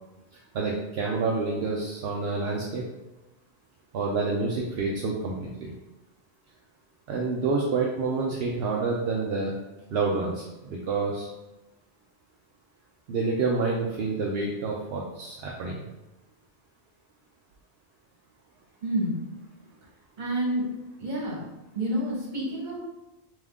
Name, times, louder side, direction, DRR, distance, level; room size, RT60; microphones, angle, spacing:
voice 1, 0.5-2.8 3.9-5.7 7.1-9.5 9.9-11.3 13.1-15.9, right 3 dB, 70° right, -3 dB, 0.8 m, -28 dB
voice 2, 18.8-19.2 20.2-20.6 21.0-21.4 21.7-22.8, right 1 dB, 45° right, -5 dB, 1.4 m, -28 dB
3.6 x 3.1 x 3.5 m, 1.0 s
omnidirectional pair, 1.1 m